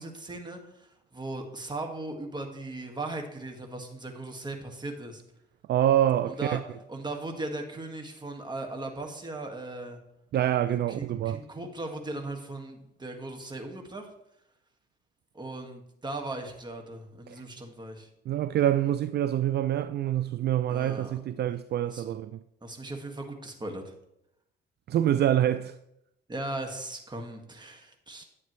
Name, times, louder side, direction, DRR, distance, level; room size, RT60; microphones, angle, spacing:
voice 1, 0.0-5.2 6.3-6.6 6.9-10.0 10.7-14.1 15.3-18.1 20.7-21.2 21.9-22.1 22.6-23.9 26.3-28.2, right 2 dB, 20° right, 1.8 m, -38 dB
voice 2, 5.7-6.6 10.3-11.4 17.3-17.4 18.3-22.4 24.9-25.8, right 11 dB, 55° right, 0.4 m, -26 dB
10.5 x 8.5 x 3.1 m
cardioid pair, 90°, 20 cm